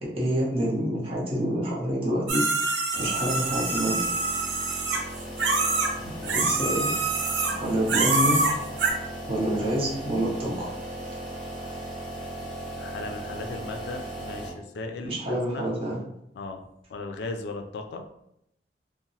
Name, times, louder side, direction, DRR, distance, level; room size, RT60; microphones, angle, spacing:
voice 1, 0.0-2.4 3.0-4.1 6.0-6.9 7.6-8.4 9.3-10.7 15.0-16.0, right 1 dB, 30° right, -4 dB, 0.7 m, -27 dB
sound 1, 2.3-5.9 6.2-7.6 7.9-8.9, right 3 dB, 85° right, 0.5 m, -25 dB
sound 2, 2.9-14.5, right 1 dB, ahead, 0.6 m, -37 dB
voice 2, 5.9-6.5 12.7-15.7 16.3-18.0, left 3 dB, 70° left, 5 dB, 0.3 m, -37 dB
2.8 x 2.0 x 2.7 m, 0.77 s
head